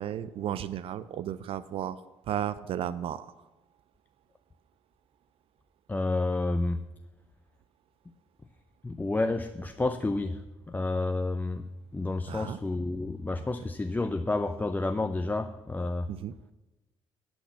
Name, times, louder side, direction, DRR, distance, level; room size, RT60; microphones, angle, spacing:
voice 1, 0.0-2.0 2.3-3.3 12.3-12.6 16.1-16.4, right 10 dB, 65° right, 16 dB, 0.4 m, -34 dB
voice 2, 5.9-6.8 8.8-10.4 10.7-11.6 11.9-16.1, left 2 dB, 15° left, 8 dB, 0.6 m, -30 dB
9.9 x 6.1 x 8.4 m, 1.1 s
supercardioid pair, 70°, 10 cm